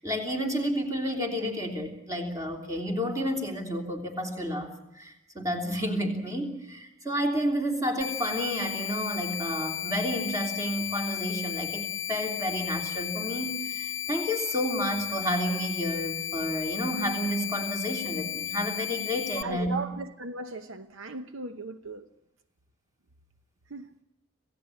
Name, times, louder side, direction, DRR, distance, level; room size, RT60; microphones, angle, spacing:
voice 1, 0.0-19.8, equal, 15° right, 3.3 m, -31 dB
sound 1, 8.0-19.4, left 11 dB, 55° left, 0.9 m, -34 dB
voice 2, 19.4-22.0 23.7-23.9, right 3 dB, 65° right, 0.9 m, -37 dB
26.5 x 17.0 x 8.6 m
head